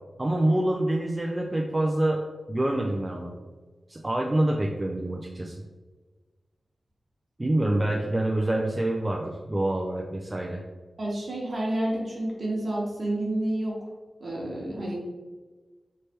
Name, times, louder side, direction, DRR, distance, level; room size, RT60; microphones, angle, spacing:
voice 1, 0.2-2.2 2.5-3.3 3.9-5.6 7.4-10.6, right 1 dB, 20° right, 0 dB, 0.3 m, -26 dB
voice 2, 11.0-13.9 14.2-15.0, right 1 dB, 50° right, -3 dB, 1.0 m, -30 dB
3.2 x 3.2 x 2.9 m, 1.3 s
wide cardioid pair, 100°, 0 cm